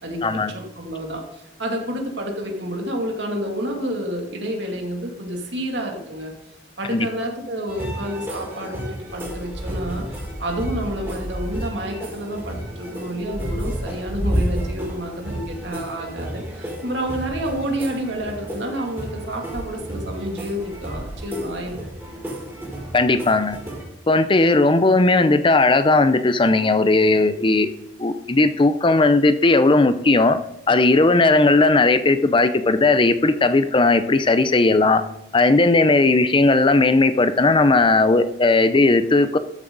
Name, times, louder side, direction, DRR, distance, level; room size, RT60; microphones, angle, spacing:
voice 1, 0.5-6.3 6.8-10.0 10.4-21.8, equal, 70° right, 1 dB, 2.5 m, -29 dB
sound 1, 7.7-23.8, right 1 dB, 15° right, 4.2 m, -31 dB
voice 2, 22.9-23.6 24.1-27.7 28.0-30.4 30.7-35.0 35.3-39.4, left 2 dB, 25° left, 11 dB, 0.5 m, -17 dB
13.5 x 7.6 x 4.0 m, 0.85 s
head